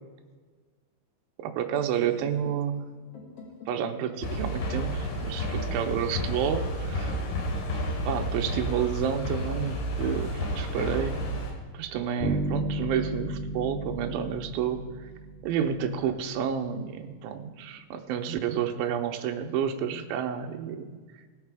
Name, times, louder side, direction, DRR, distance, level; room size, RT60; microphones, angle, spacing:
voice 1, 1.4-2.8 3.7-7.1 8.0-11.2 11.7-14.8 15.4-20.9, right 8 dB, 75° right, 5 dB, 2.4 m, -30 dB
sound 1, 1.8-9.7, equal, 50° left, 2.1 m, -48 dB
sound 2, 4.2-11.5, equal, 75° left, 3.7 m, -31 dB
sound 3, 12.2-15.9, right 1 dB, 25° right, 1.5 m, -33 dB
18.0 x 6.5 x 4.8 m, 1.5 s
omnidirectional pair, 4.6 m